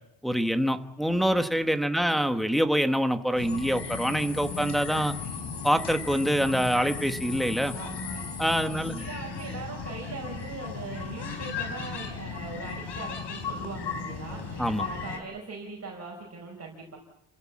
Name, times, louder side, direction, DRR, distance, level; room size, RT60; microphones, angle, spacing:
voice 1, 0.2-5.1 5.6-7.7 8.4-8.9 14.6-14.8, equal, ahead, 7 dB, 1.2 m, -25 dB
sound 1, 3.3-15.2, left 5 dB, 60° left, 4.6 m, -36 dB
voice 2, 7.7-17.0, right 3 dB, 35° right, -1 dB, 5.2 m, -41 dB
29.5 x 16.0 x 7.5 m, 0.86 s
cardioid pair, 150°, 46 cm